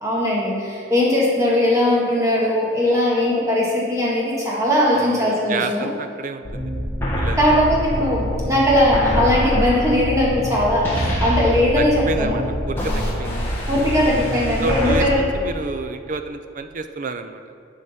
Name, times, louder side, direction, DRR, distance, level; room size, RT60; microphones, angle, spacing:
voice 1, 0.0-5.9 7.4-12.4 13.7-15.2, left 1 dB, 15° right, -5 dB, 1.6 m, -19 dB
voice 2, 4.9-6.7 7.2-7.6 11.8-13.4 14.6-17.4, right 3 dB, 40° right, 9 dB, 0.4 m, -29 dB
sound 1, 6.4-15.1, equal, 10° left, 1.3 m, -25 dB
11.0 x 4.9 x 4.2 m, 2.7 s
head